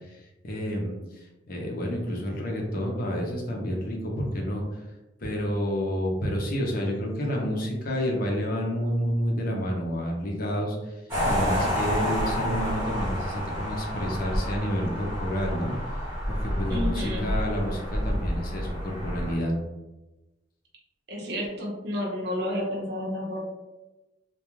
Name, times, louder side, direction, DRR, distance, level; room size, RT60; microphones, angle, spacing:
voice 1, 0.4-1.0 1.5-4.8 5.2-10.9 11.3-15.7 16.3-19.5, equal, 55° left, -1 dB, 0.6 m, -29 dB
sound 1, 11.1-19.3, equal, 15° right, 1.1 m, -29 dB
voice 2, 16.7-17.3 21.1-23.4, left 1 dB, 65° right, -2 dB, 0.8 m, -31 dB
2.3 x 2.2 x 3.0 m, 1.0 s
head